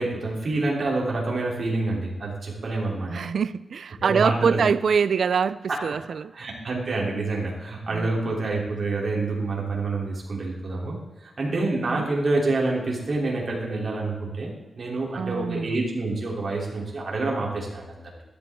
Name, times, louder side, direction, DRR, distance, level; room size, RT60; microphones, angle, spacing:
voice 1, 0.0-3.2 4.0-4.6 6.3-18.2, right 2 dB, 45° right, 2.9 m, -27 dB
voice 2, 3.1-6.3 7.9-8.1 11.5-12.2 15.1-15.8, right 6 dB, 70° right, 0.4 m, -25 dB
13.5 x 11.0 x 3.6 m
wide cardioid pair, 155°, 0 cm